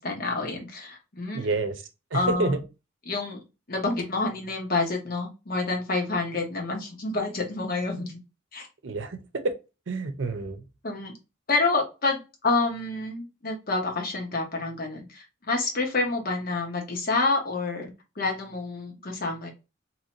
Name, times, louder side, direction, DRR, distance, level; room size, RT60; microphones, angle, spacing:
voice 1, 0.0-1.6 2.1-2.6 3.1-3.4 3.7-8.2 8.5-8.7 10.8-11.1 11.5-17.9 18.2-19.5, left 3 dB, 50° left, 1.0 m, -28 dB
voice 2, 1.3-1.8 2.1-2.6 8.8-9.2 9.4-9.5 9.9-10.6, right 3 dB, 70° right, 0.7 m, -28 dB
2.9 x 2.7 x 2.9 m
head